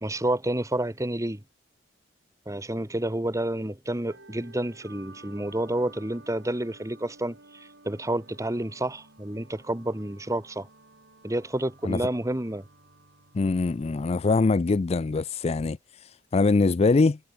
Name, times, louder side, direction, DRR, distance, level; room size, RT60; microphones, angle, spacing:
voice 1, 0.0-1.4 2.4-10.7 11.2-12.6, right 1 dB, 15° right, 1.6 m, -29 dB
sound 1, 4.1-15.1, right 2 dB, 80° right, 6.6 m, -54 dB
voice 2, 13.3-17.2, left 3 dB, 35° left, 0.4 m, -23 dB
head